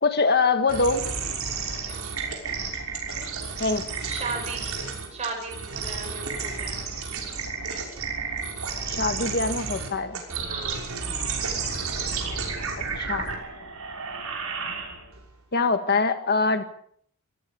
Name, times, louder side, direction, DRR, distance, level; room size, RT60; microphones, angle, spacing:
voice 1, 0.0-1.1 3.6-3.8 8.9-10.2 13.0-13.3 15.5-16.6, left 4 dB, 45° left, 8 dB, 1.7 m, -23 dB
sound 1, 0.7-15.2, right 5 dB, 70° right, 6.1 m, -32 dB
voice 2, 4.0-6.8 10.4-10.8, right 3 dB, 30° right, 1 dB, 6.4 m, -36 dB
25.5 x 17.5 x 7.1 m, 0.63 s
head